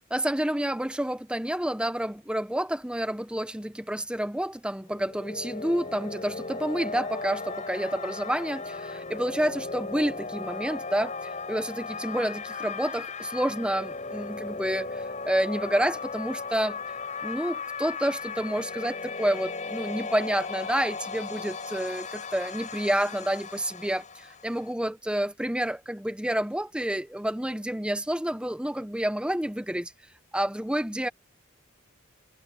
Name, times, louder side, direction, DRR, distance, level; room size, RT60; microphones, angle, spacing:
voice 1, 0.1-16.8 17.2-29.9 30.3-31.1, right 1 dB, 5° right, 0.8 m, -29 dB
sound 1, 4.8-24.7, left 4 dB, 35° left, 6.3 m, -36 dB
head